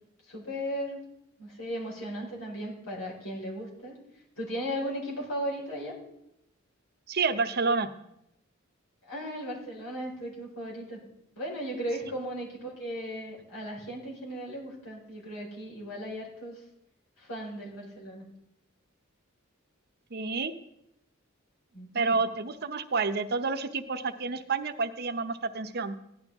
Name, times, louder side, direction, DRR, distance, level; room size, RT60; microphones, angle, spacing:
voice 1, 0.3-1.0 1.4-4.0 4.4-5.9 9.0-11.0 11.3-16.6 17.2-18.2 21.7-22.2, equal, 90° left, -3 dB, 4.6 m, -36 dB
voice 2, 7.1-7.9 20.1-20.5 21.9-26.0, right 4 dB, 50° right, 9 dB, 0.8 m, -29 dB
15.5 x 11.0 x 3.6 m, 0.81 s
head